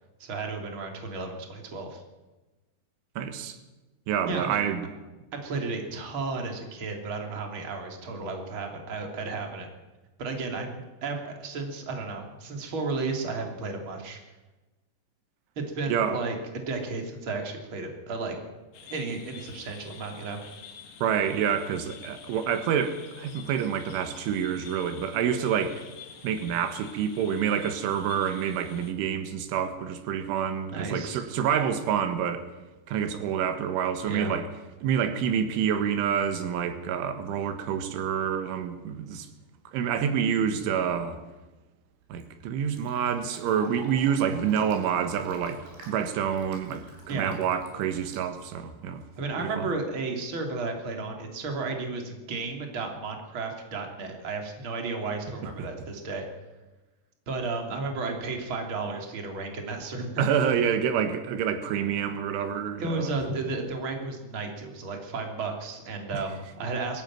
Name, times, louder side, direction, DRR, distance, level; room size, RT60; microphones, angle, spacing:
voice 1, 0.2-2.0 4.3-4.6 5.3-9.7 10.2-14.2 15.6-18.4 18.9-20.4 30.7-31.2 34.1-34.3 47.1-47.4 49.2-56.2 57.3-60.3 62.8-67.0, right 3 dB, 30° right, 3.1 m, -33 dB
voice 2, 3.2-3.6 4.1-4.9 15.9-16.2 21.0-25.8 26.2-32.5 32.9-34.5 34.8-39.3 39.7-41.2 42.1-49.0 49.4-49.7 55.6-55.7 60.2-63.2, right 8 dB, 90° right, 3.9 m, -27 dB
sound 1, 18.7-28.9, left 6 dB, 55° left, 3.1 m, -48 dB
Fill (with liquid), 41.9-49.0, right 2 dB, 70° right, 6.5 m, -50 dB
22.0 x 14.0 x 9.1 m
omnidirectional pair, 5.4 m